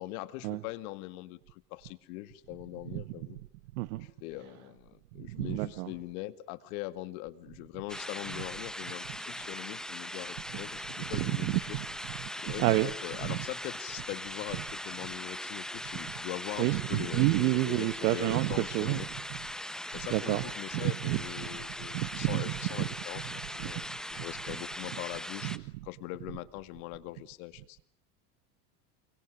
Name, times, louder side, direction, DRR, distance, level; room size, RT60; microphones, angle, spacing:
voice 1, 0.0-3.4 4.0-11.8 12.4-19.1 19.9-27.8, left 17 dB, 70° left, 2.1 m, -42 dB
voice 2, 3.7-4.1 5.1-5.9 11.1-11.9 12.5-12.9 13.2-13.4 16.6-19.0 19.3-19.4 20.1-20.4 20.7-21.5 21.9-22.5 22.8-22.9 23.6-23.7 24.2-24.3 25.4-25.6, right 19 dB, 75° right, 1.3 m, -29 dB
sound 1, 7.9-25.6, equal, ahead, 1.2 m, -40 dB
28.5 x 23.5 x 6.4 m
supercardioid pair, 100°, 45 cm